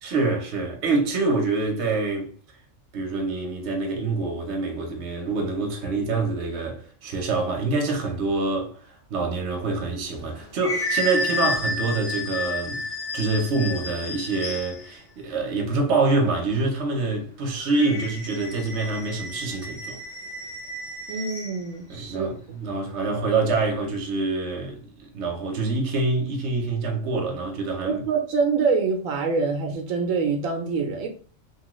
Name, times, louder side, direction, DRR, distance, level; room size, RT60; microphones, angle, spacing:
voice 1, 0.0-2.3 2.9-12.8 13.1-20.0 21.9-28.0, right 3 dB, 60° right, 1.1 m, -26 dB
sound 1, 10.1-14.9 17.6-21.6, left 2 dB, 50° left, 1.0 m, -31 dB
voice 2, 21.1-22.3 27.8-31.1, right 5 dB, 85° right, 1.0 m, -25 dB
3.0 x 2.3 x 3.0 m
omnidirectional pair, 1.4 m